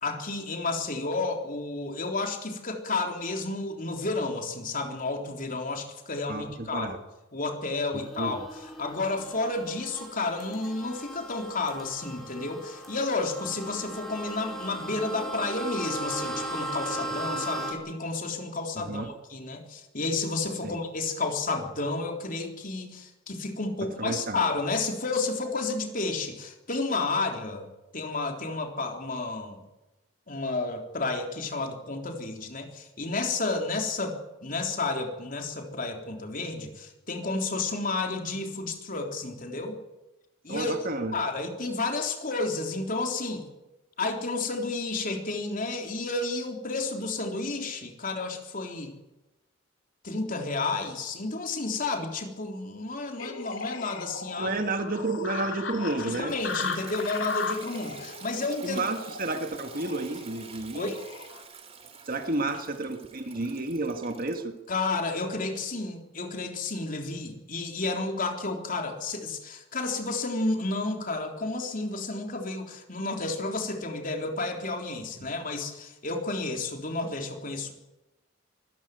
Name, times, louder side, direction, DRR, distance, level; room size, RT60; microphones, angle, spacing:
voice 1, 0.0-7.0 7.3-27.7 27.9-29.6 30.3-39.8 40.4-40.8 41.1-43.4 44.0-48.9 50.0-54.6 56.0-58.8 60.7-61.0 64.7-77.7, left 3 dB, 45° left, 3 dB, 3.6 m, -31 dB
voice 2, 6.3-7.0 7.9-8.4 18.8-19.1 20.6-20.8 24.0-24.4 40.5-41.2 54.4-56.3 58.6-60.9 62.1-64.6 75.2-75.3, right 2 dB, 45° right, 6 dB, 1.7 m, -31 dB
sound 1, 8.0-17.7, right 1 dB, ahead, 4.8 m, -37 dB
sound 2, 53.2-61.4, left 5 dB, 80° left, 2.5 m, -37 dB
Toilet flush, 55.9-64.5, right 5 dB, 30° right, 2.8 m, -47 dB
24.5 x 14.5 x 9.4 m, 1.0 s
head